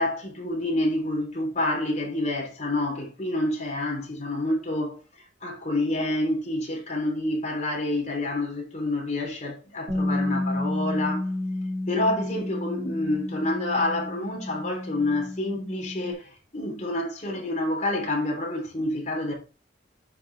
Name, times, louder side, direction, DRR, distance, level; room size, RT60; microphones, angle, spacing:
voice 1, 0.0-5.0 5.4-11.3 11.9-19.3, left 1 dB, 40° left, 3.4 m, -28 dB
Bass guitar, 9.9-16.1, left 1 dB, 30° right, 3.9 m, -31 dB
9.4 x 6.2 x 3.4 m
head